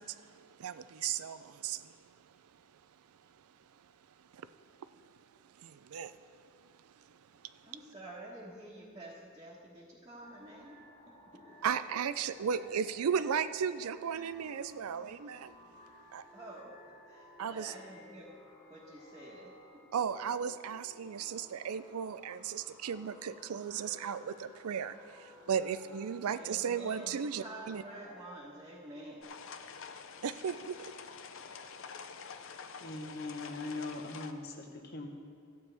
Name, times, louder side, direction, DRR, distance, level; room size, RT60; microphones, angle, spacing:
voice 1, 0.0-2.1 4.3-4.5 5.6-6.4 6.8-7.5 11.6-15.5 16.1-16.2 17.4-17.7 19.9-27.8 30.2-30.9, right 7 dB, 90° right, 13 dB, 0.4 m, -36 dB
voice 2, 7.6-11.6 16.3-18.3 18.7-19.8 26.3-29.3, right 1 dB, 15° right, -9 dB, 1.3 m, -49 dB
sound 1, 10.2-28.4, left 1 dB, 30° left, 2.2 m, -57 dB
sound 2, 29.2-34.3, left 6 dB, 65° left, 0.5 m, -47 dB
voice 3, 32.8-35.1, left 2 dB, 45° left, 3 dB, 1.0 m, -41 dB
14.0 x 8.8 x 3.4 m, 2.2 s
head